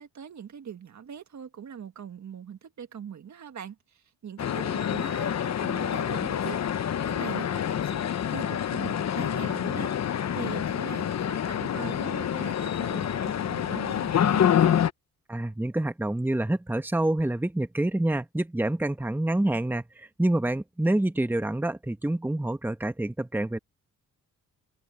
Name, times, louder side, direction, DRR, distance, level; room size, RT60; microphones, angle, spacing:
voice 1, 0.0-8.0 8.3-14.4, right 8 dB, 55° right, 1.7 m, -41 dB
sound 1, 4.4-14.9, left 9 dB, 55° left, 0.9 m, -27 dB
voice 2, 15.3-23.6, right 1 dB, 5° right, 1.2 m, -27 dB
cardioid pair, 85°, 33 cm